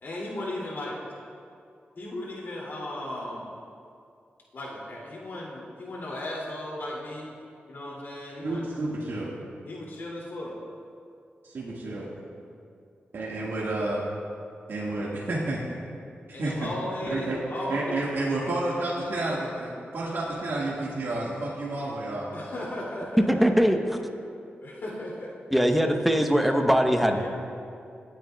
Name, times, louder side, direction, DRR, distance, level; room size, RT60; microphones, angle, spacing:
voice 1, 0.0-0.9 2.0-3.5 4.5-7.3 7.7-8.7 9.7-10.5 16.3-18.0 22.3-23.2 24.6-25.3 26.9-27.3, left 1 dB, 65° left, -4 dB, 2.6 m, -36 dB
voice 2, 8.4-9.3 11.4-12.1 13.1-14.0 14.7-15.6 16.3-16.7 17.1-17.4 17.7-22.3, right 2 dB, 75° right, -6 dB, 1.7 m, -30 dB
voice 3, 23.2-24.0 25.5-27.3, equal, ahead, 4 dB, 1.0 m, -21 dB
23.0 x 9.0 x 2.3 m, 2.4 s
cardioid pair, 70°, 4 cm